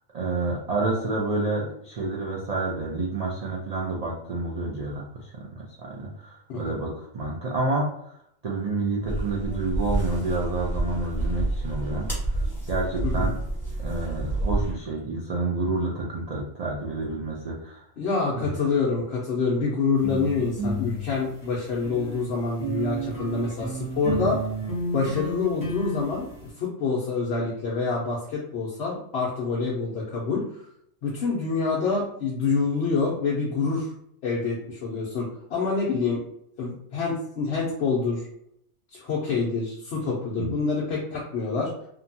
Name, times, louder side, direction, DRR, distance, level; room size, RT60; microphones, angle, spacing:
voice 1, 0.1-8.1 8.4-12.4 12.7-13.4 13.8-17.8 24.1-24.3 40.4-40.5, right 2 dB, 75° right, -3 dB, 0.3 m, -29 dB
sound 1, 9.1-14.7, right 2 dB, ahead, 1.1 m, -29 dB
voice 2, 13.0-13.3 18.0-24.4 24.9-26.3 26.6-30.4 31.0-33.9 34.2-36.2 36.6-38.2 38.9-41.7, left 4 dB, 60° left, -5 dB, 0.8 m, -26 dB
sound 2, 20.0-22.2 22.6-26.5, right 2 dB, 20° left, 0.6 m, -31 dB
2.8 x 2.3 x 2.6 m, 0.73 s
omnidirectional pair, 1.3 m